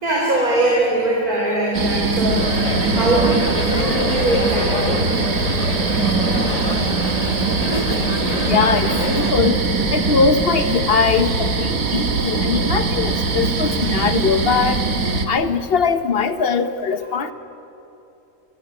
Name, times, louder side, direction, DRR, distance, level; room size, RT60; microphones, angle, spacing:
voice 1, 0.0-3.3 3.8-5.1 5.8-7.0 17.0-17.2, right 2 dB, 85° right, -3 dB, 4.5 m, -22 dB
sound 1, 1.7-15.3, right 4 dB, 70° right, 2.0 m, -21 dB
sound 2, 2.4-9.3, left 3 dB, 25° left, 1.4 m, -26 dB
voice 2, 8.5-9.6 9.9-14.8 15.3-17.3, left 5 dB, 45° left, 11 dB, 1.2 m, -20 dB
23.0 x 17.0 x 10.0 m, 2.8 s
omnidirectional pair, 1.5 m